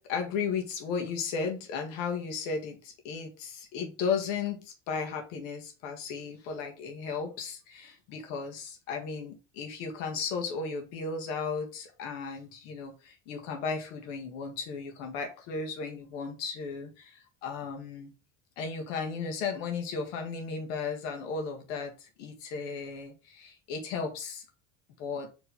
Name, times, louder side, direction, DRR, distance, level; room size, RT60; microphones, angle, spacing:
voice 1, 0.0-18.1 18.6-24.4 25.0-25.3, left 5 dB, 85° left, 1.9 m, -35 dB
4.7 x 3.8 x 5.6 m
supercardioid pair, 95°, 36 cm